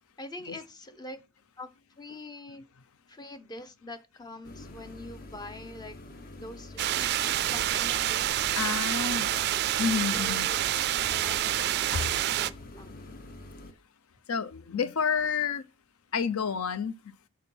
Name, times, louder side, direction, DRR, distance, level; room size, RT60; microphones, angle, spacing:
voice 1, 0.2-1.2 1.6-1.7 2.0-2.6 3.1-6.0 6.3-8.3 9.2-9.5 10.1-10.7 11.1-13.0, left 2 dB, 20° left, 0.6 m, -44 dB
sound 1, 4.4-13.7, left 2 dB, 45° left, 0.9 m, -46 dB
sound 2, 6.8-12.5, right 12 dB, 50° right, 0.3 m, -28 dB
voice 2, 8.5-9.3 9.8-10.5 11.9-12.1 12.9-13.3 14.3-15.6 16.1-16.9, left 6 dB, 75° left, 0.5 m, -30 dB
6.4 x 4.4 x 5.3 m
head